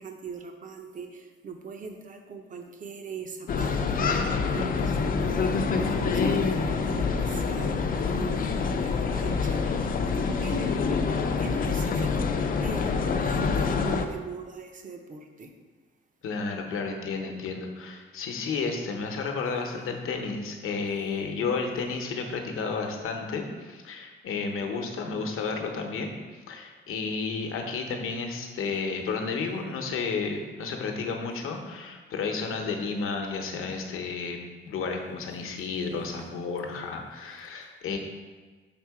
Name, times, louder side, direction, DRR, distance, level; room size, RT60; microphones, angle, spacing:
voice 1, 0.0-12.3 12.6-15.5 16.5-16.6 31.3-31.4 36.1-36.3, right 4 dB, 40° right, 5 dB, 0.6 m, -41 dB
sound 1, 3.5-14.0, left 5 dB, 40° left, 0.4 m, -26 dB
voice 2, 16.2-34.4 34.7-38.0, left 4 dB, 80° left, 3 dB, 0.9 m, -32 dB
6.0 x 3.7 x 4.7 m, 1.4 s
wide cardioid pair, 155°, 21 cm